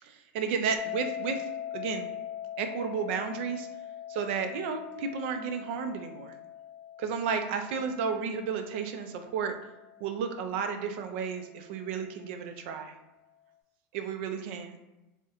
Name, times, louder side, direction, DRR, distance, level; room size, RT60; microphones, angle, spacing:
voice 1, 0.0-1.4 1.7-2.1 2.6-3.7 4.1-6.3 7.0-9.6 10.0-12.9 13.9-14.8, right 6 dB, 60° right, 6 dB, 0.4 m, -32 dB
sound 1, 0.8-11.7, left 10 dB, 15° left, 0.8 m, -42 dB
2.8 x 2.1 x 3.5 m, 1.0 s
supercardioid pair, 170°, 7 cm